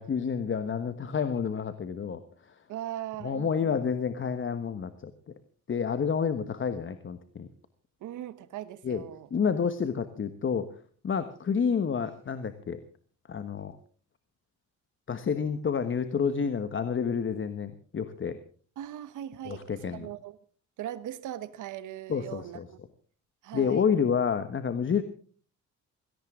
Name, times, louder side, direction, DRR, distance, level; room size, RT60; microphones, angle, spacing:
voice 1, 0.0-2.2 3.2-5.1 5.7-7.5 8.8-9.0 9.3-10.7 11.0-12.8 13.3-13.8 15.1-18.4 19.4-20.1 22.1-22.6 23.5-25.0, left 6 dB, 40° left, 1.3 m, -29 dB
voice 2, 2.7-3.7 8.0-9.3 18.8-20.4 20.8-22.8 23.4-23.8, right 12 dB, 85° right, 1.2 m, -39 dB
17.5 x 17.0 x 3.7 m
cardioid pair, 90°, 30 cm